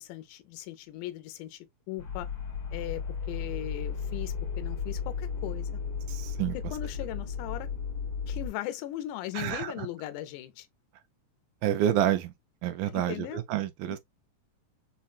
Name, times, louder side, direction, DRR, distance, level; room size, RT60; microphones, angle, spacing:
voice 1, 0.0-2.3 2.7-5.7 6.5-7.7 8.3-10.7 12.8-13.4 13.9-14.0, left 14 dB, 80° left, 2.0 m, -38 dB
sound 1, 2.0-8.5, left 6 dB, 60° left, 1.2 m, -34 dB
voice 2, 6.1-6.6 9.4-9.7 11.6-12.3 12.6-14.0, right 11 dB, 80° right, 2.1 m, -28 dB
5.6 x 2.2 x 2.3 m
omnidirectional pair, 3.7 m